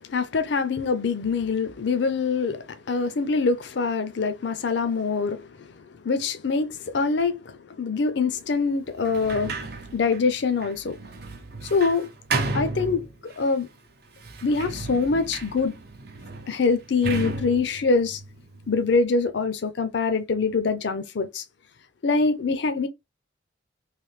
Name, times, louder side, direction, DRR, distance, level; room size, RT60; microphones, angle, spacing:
voice 1, 0.1-5.4 6.0-7.4 7.8-9.5 9.9-11.0 11.7-12.1 12.5-13.0 13.4-13.7 14.4-15.7 16.5-18.2 18.7-21.4 22.0-22.9, left 4 dB, 65° left, 0.5 m, -24 dB
Sliding door, 9.0-13.5 14.2-19.0, right 3 dB, 50° right, 0.7 m, -34 dB
3.2 x 2.6 x 3.2 m
head